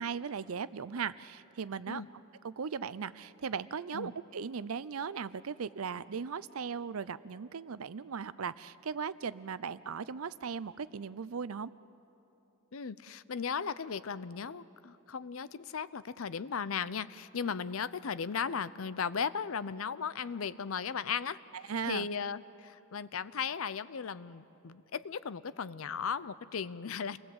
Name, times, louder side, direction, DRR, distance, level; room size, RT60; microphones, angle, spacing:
voice 1, 0.0-2.0 2.4-11.7 17.5-17.6 21.5-22.1, right 6 dB, 90° right, 17 dB, 0.6 m, -38 dB
voice 2, 12.7-27.2, left 6 dB, 75° left, 16 dB, 0.6 m, -36 dB
28.5 x 20.5 x 7.9 m, 2.9 s
head